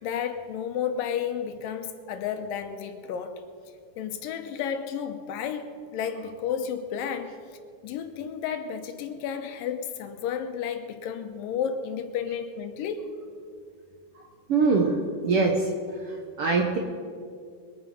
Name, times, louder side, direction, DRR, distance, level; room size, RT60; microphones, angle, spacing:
voice 1, 0.0-3.4 4.0-7.3 7.8-13.0, left 8 dB, 90° left, 8 dB, 2.7 m, -32 dB
voice 2, 14.5-15.6 16.4-16.8, right 4 dB, 65° right, 2 dB, 1.4 m, -22 dB
22.5 x 9.0 x 5.3 m, 2.2 s
omnidirectional pair, 3.8 m